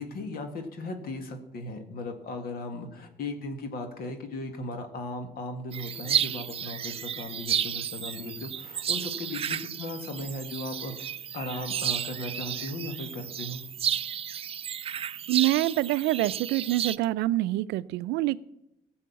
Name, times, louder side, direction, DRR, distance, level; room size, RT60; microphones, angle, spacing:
voice 1, 0.0-13.6, left 2 dB, 65° left, 6 dB, 2.0 m, -37 dB
sound 1, 5.7-17.0, right 9 dB, 35° right, 0.4 m, -32 dB
voice 2, 15.3-18.4, right 16 dB, 90° right, 17 dB, 0.5 m, -26 dB
16.0 x 7.1 x 7.0 m, 0.87 s
cardioid pair, 110°, 17 cm